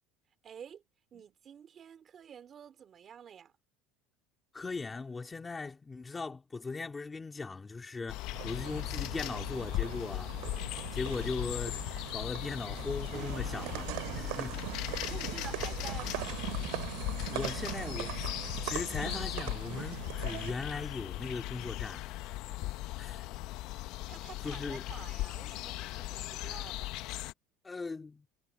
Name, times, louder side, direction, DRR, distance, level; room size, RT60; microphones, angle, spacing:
voice 1, 0.4-0.8 1.1-3.5 15.0-16.3 24.1-27.0, right 8 dB, 25° right, 3.4 m, -49 dB
voice 2, 4.5-10.3 10.9-14.6 17.2-18.3 18.6-22.1 23.0-23.3 24.4-24.8 27.6-28.3, left 4 dB, 15° left, 2.9 m, -39 dB
sound 1, 8.1-27.3, left 17 dB, 55° left, 0.6 m, -38 dB
sound 2, 8.3-20.5, right 25 dB, 70° right, 3.0 m, -41 dB
sound 3, 13.1-24.0, right 16 dB, 50° right, 1.2 m, -50 dB
cardioid pair, 165°, 0 cm